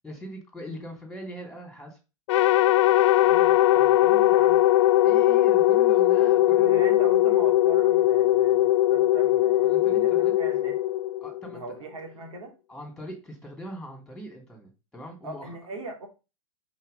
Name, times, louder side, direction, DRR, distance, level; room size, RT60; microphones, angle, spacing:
voice 1, 0.0-2.0 5.0-7.1 9.6-10.3 11.2-11.6 12.7-15.6, equal, ahead, 2.9 m, -41 dB
sound 1, 2.3-11.6, left 14 dB, 60° left, 0.5 m, -20 dB
voice 2, 3.2-4.7 6.5-10.8 11.5-12.5 15.2-16.1, right 2 dB, 75° right, 3.0 m, -39 dB
5.7 x 4.8 x 5.3 m
hypercardioid pair, 110°, 18 cm